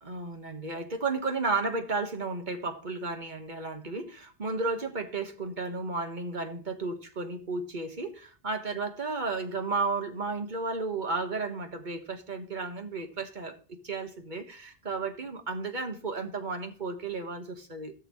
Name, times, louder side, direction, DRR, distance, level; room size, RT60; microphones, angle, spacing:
voice 1, 0.0-17.9, right 3 dB, 50° right, 1.5 m, -33 dB
16.5 x 6.6 x 3.1 m
omnidirectional pair, 1.1 m